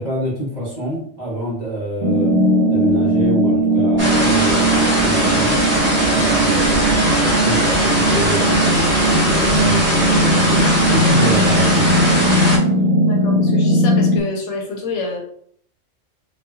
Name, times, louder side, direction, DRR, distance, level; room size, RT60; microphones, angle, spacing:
voice 1, 0.0-2.3 2.7-4.7 5.0-5.6 6.1-12.5, equal, 35° right, -6 dB, 1.0 m, -27 dB
sound 1, 2.0-14.2, right 1 dB, 85° right, 1.0 m, -18 dB
sound 2, 4.0-12.6, equal, 10° right, 0.9 m, -19 dB
voice 2, 13.0-15.2, left 3 dB, 70° left, 0 dB, 1.0 m, -27 dB
3.0 x 2.5 x 2.2 m, 0.62 s
omnidirectional pair, 1.3 m